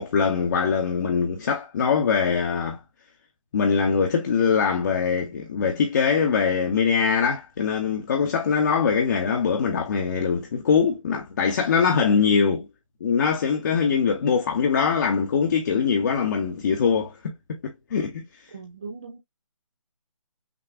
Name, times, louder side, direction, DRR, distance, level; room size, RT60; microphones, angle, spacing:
voice 1, 0.0-2.8 3.5-12.7 13.0-18.2, left 6 dB, 35° left, 0.8 m, -22 dB
voice 2, 18.5-19.2, right 4 dB, 15° right, 0.3 m, -39 dB
6.1 x 2.4 x 3.4 m
figure-of-eight pair, 155°, 17 cm